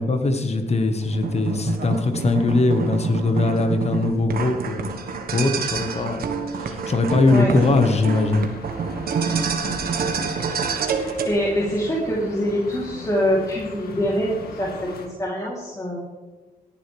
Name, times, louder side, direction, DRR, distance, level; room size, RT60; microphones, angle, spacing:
voice 1, 0.0-6.2 6.6-8.5, left 2 dB, 45° left, 6 dB, 1.6 m, -21 dB
sound 1, 1.0-11.3, right 5 dB, 75° right, 1.5 m, -27 dB
sound 2, 7.6-15.1, left 3 dB, 85° left, 2.1 m, -40 dB
voice 2, 10.8-16.0, equal, 20° left, -5 dB, 3.5 m, -25 dB
18.5 x 10.5 x 3.5 m, 1.2 s
cardioid pair, 85°, 16 cm